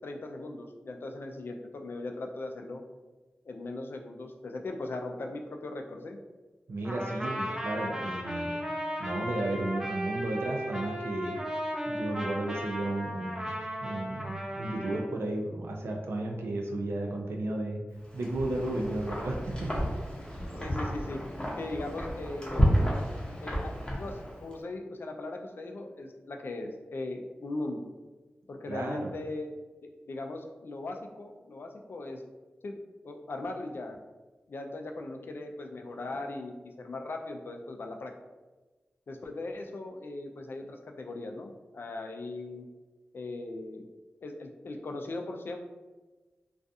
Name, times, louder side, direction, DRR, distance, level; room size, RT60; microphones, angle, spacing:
voice 1, 0.0-2.8 3.4-6.2 20.6-21.2 21.6-22.9 23.4-27.9 28.5-29.5 30.0-32.2 32.6-32.8 33.0-34.0 34.5-38.1 39.1-42.7 43.1-43.8 44.2-45.6, left 2 dB, 65° left, 3 dB, 0.3 m, -39 dB
voice 2, 6.7-8.6 9.0-11.4 11.9-17.8 18.1-19.7 28.7-29.1, right 2 dB, 85° right, 1 dB, 0.4 m, -33 dB
Trumpet, 6.8-15.1, equal, 15° right, 0.4 m, -35 dB
Wind, 18.0-24.5, equal, 25° left, 0.8 m, -31 dB
2.4 x 2.3 x 2.6 m, 1.2 s
cardioid pair, 60°, 4 cm